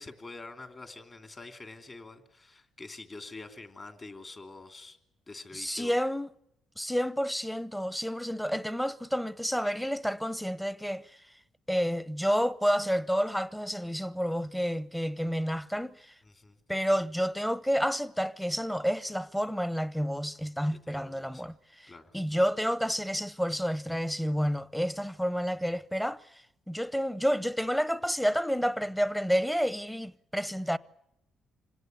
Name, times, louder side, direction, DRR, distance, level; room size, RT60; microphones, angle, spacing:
voice 1, 0.0-5.0 5.3-5.9 16.2-16.6 20.6-21.4 21.9-22.2, left 3 dB, 30° left, 3.0 m, -46 dB
voice 2, 5.5-6.3 6.8-11.2 11.7-16.1 16.7-30.8, equal, 5° left, 0.8 m, -30 dB
26.5 x 17.5 x 9.6 m
cardioid pair, 90°, 0 cm